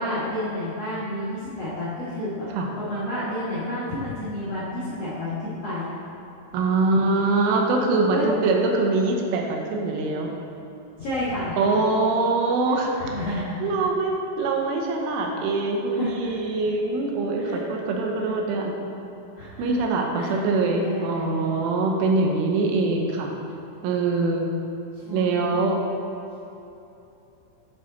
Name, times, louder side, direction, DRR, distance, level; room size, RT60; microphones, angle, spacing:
voice 1, 0.0-6.0 8.1-8.2 11.0-11.7 13.0-13.8 15.9-16.1 17.3-17.6 19.3-19.8 20.1-20.4 20.8-21.5 25.0-25.6, left 1 dB, 90° left, -11 dB, 1.3 m, -30 dB
voice 2, 6.5-10.3 11.6-12.9 13.6-18.9 19.6-23.3 23.8-24.5 25.1-25.8, right 3 dB, 85° right, 1 dB, 3.3 m, -23 dB
9.7 x 5.1 x 4.0 m, 2.9 s
omnidirectional pair, 5.5 m